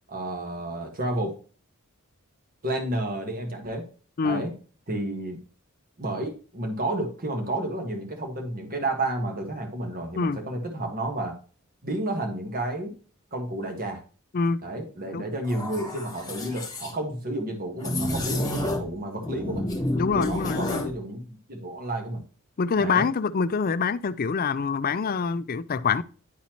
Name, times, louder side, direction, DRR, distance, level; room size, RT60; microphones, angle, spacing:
voice 1, 0.1-1.3 2.6-3.8 4.2-4.5 4.9-5.4 6.0-11.3 11.8-12.9 13.3-14.0 14.6-19.7 20.1-22.2 22.8-23.1, right 1 dB, 40° right, 1.5 m, -31 dB
sound 1, 15.4-16.9 17.8-18.9 19.2-20.9, left 1 dB, 20° left, 1.7 m, -30 dB
voice 2, 19.9-20.9 22.6-26.0, left 5 dB, 40° left, 0.4 m, -25 dB
10.5 x 4.2 x 2.9 m
head